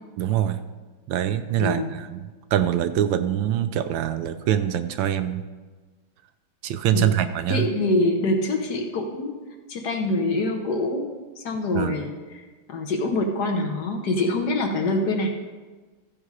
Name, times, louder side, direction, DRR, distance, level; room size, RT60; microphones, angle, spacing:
voice 1, 0.2-0.6 1.1-5.4 6.6-7.7 11.7-12.1, right 11 dB, 75° right, 10 dB, 1.3 m, -24 dB
voice 2, 1.6-1.9 6.9-7.2 7.5-9.3 9.7-11.1 11.4-15.3, left 2 dB, 60° left, 3 dB, 1.5 m, -25 dB
14.0 x 5.4 x 4.7 m, 1.3 s
omnidirectional pair, 2.2 m